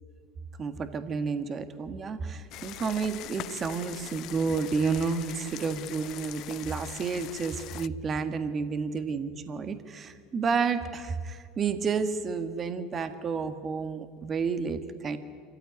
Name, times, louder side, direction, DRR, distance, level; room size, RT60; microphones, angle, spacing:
voice 1, 0.6-15.2, right 5 dB, 35° right, 9 dB, 1.7 m, -31 dB
sound 1, 2.5-7.9, left 15 dB, 55° left, 0.5 m, -42 dB
26.5 x 15.0 x 9.6 m, 2.1 s
hypercardioid pair, 90°, 0 cm